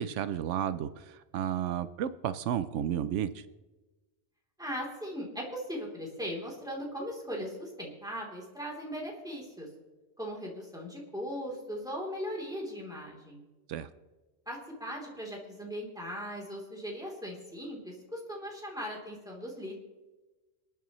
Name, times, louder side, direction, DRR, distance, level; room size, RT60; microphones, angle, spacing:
voice 1, 0.0-3.4 13.7-13.9, right 9 dB, 85° right, 12 dB, 0.9 m, -32 dB
voice 2, 4.6-9.7 10.2-13.4 14.5-19.8, equal, 5° right, -3 dB, 3.2 m, -39 dB
27.0 x 9.3 x 3.1 m, 1.2 s
omnidirectional pair, 1.2 m